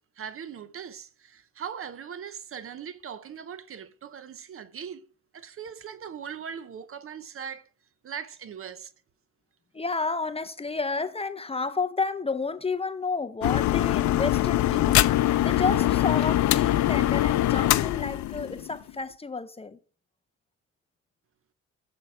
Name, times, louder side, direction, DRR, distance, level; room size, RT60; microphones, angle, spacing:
voice 1, 0.2-5.1 5.3-7.7 8.0-8.9, right 7 dB, 45° right, 0.7 m, -40 dB
voice 2, 9.7-15.0 15.4-19.8, left 4 dB, 20° left, 0.6 m, -31 dB
sound 1, 13.4-18.9, left 14 dB, 70° left, 0.5 m, -23 dB
7.5 x 7.0 x 4.8 m
cardioid pair, 115°, 30 cm